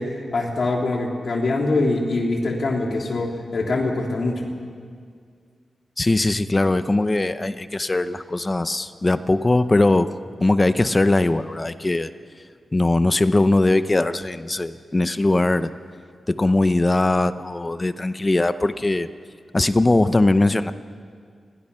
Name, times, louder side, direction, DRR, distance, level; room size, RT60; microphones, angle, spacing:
voice 1, 0.0-4.4, left 2 dB, 60° left, 0 dB, 3.8 m, -23 dB
voice 2, 6.0-10.1 10.4-12.1 12.7-15.7 16.3-19.1 19.5-20.7, left 2 dB, 25° left, 11 dB, 0.8 m, -20 dB
29.0 x 23.0 x 5.7 m, 2.1 s
wide cardioid pair, 105°, 0 cm